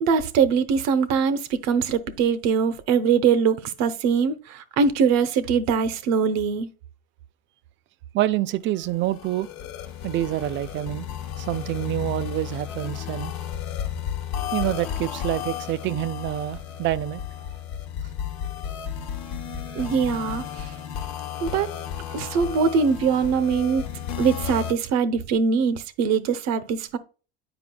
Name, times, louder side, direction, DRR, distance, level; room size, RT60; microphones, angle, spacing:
voice 1, 0.0-6.7 19.7-20.7 21.4-21.7 22.1-23.8 24.2-27.0, right 6 dB, 60° right, 0.9 m, -22 dB
voice 2, 8.1-9.5 10.0-11.1 11.4-13.3 14.5-17.2, right 14 dB, 40° right, 0.4 m, -27 dB
sound 1, 8.8-24.7, left 9 dB, 65° left, 1.0 m, -33 dB
9.6 x 4.8 x 2.3 m
supercardioid pair, 100°, 31 cm